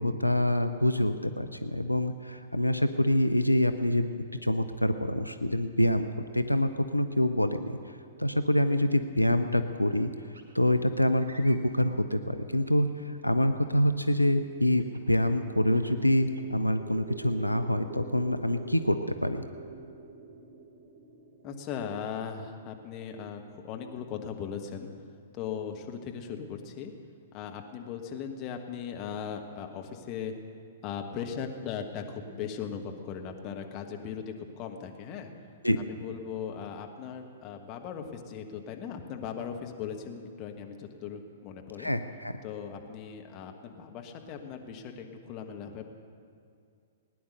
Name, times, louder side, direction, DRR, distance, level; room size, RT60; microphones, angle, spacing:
voice 1, 0.0-6.1 6.3-7.8 8.2-10.1 10.5-19.4 35.6-35.8 41.8-42.3, left 1 dB, 85° left, 9 dB, 0.6 m, -26 dB
sound 1, 10.3-10.5 11.2-11.9 12.7-13.3 14.8-15.1 15.6-16.7 17.2-17.6, right 1 dB, 65° right, 1.6 m, -51 dB
sound 2, 14.7-22.8, right 4 dB, 30° right, 1.3 m, -46 dB
voice 2, 21.4-24.9 25.3-26.9 27.3-30.3 30.8-35.3 35.8-41.9 42.4-45.9, left 7 dB, 30° left, 3 dB, 1.4 m, -38 dB
19.0 x 10.0 x 6.6 m, 2.3 s
figure-of-eight pair, 110°, 0 cm